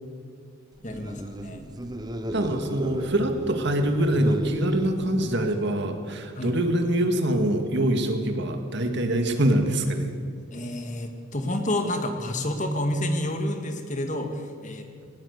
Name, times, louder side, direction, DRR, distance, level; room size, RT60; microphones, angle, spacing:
voice 1, 0.8-1.7 6.4-6.5 10.5-14.9, left 1 dB, 35° left, 5 dB, 1.9 m, -29 dB
sound 1, 0.8-5.9, right 1 dB, 20° right, 1.0 m, -34 dB
voice 2, 2.3-10.1, right 1 dB, 55° right, 5 dB, 2.1 m, -24 dB
19.0 x 18.5 x 8.2 m, 2.1 s
head